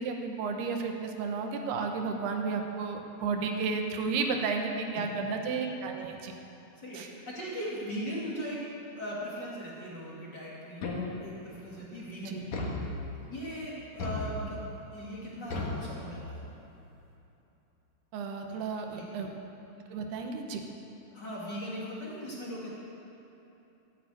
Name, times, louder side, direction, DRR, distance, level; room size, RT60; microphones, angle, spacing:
voice 1, 0.0-6.3 6.9-7.1 12.3-12.4 18.1-19.3 19.9-20.6, right 4 dB, 85° right, 3 dB, 3.2 m, -32 dB
voice 2, 6.8-8.6 8.9-10.8 11.2-12.7 13.3-14.6 14.9-16.4 18.5-18.6 18.9-19.2 21.1-22.7, equal, 30° left, -6 dB, 2.5 m, -39 dB
sound 1, 10.8-11.5 12.5-13.4 14.0-14.8 15.5-16.5, left 2 dB, 55° left, 2.6 m, -36 dB
13.0 x 10.0 x 9.3 m, 3.0 s
omnidirectional pair, 4.5 m